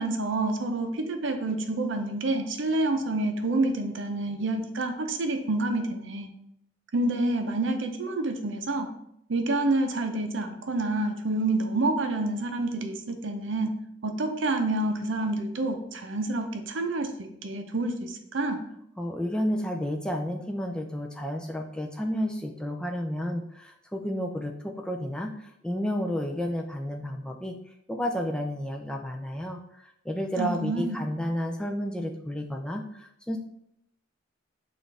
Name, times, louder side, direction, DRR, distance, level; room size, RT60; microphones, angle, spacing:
voice 1, 0.0-6.3 6.9-8.9 9.3-13.7 14.0-18.6 30.4-31.0, right 2 dB, 70° right, 5 dB, 0.6 m, -28 dB
voice 2, 19.0-27.5 27.9-33.4, equal, 5° left, 2 dB, 0.4 m, -31 dB
6.1 x 2.5 x 3.3 m, 0.74 s
head